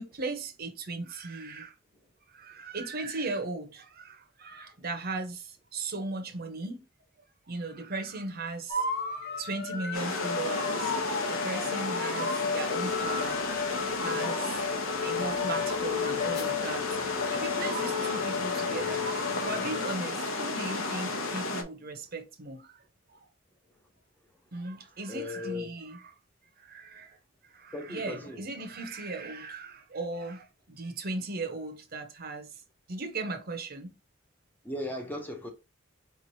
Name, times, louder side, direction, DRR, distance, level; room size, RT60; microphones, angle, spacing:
voice 1, 0.0-1.7 2.3-6.8 7.5-11.0 11.3-13.5 14.0-14.6 15.0-19.0 19.3-22.8 23.1-23.2 24.5-26.0 26.6-27.2 27.5-32.5 32.9-33.9, right 3 dB, 45° right, 0.7 m, -37 dB
sound 1, 8.7-19.9, left 5 dB, 50° left, 0.8 m, -33 dB
sound 2, 9.9-21.6, left 3 dB, 80° left, 0.9 m, -33 dB
voice 2, 25.1-25.8 27.7-28.4 34.6-35.5, left 2 dB, 10° left, 0.6 m, -37 dB
4.9 x 3.1 x 2.7 m
head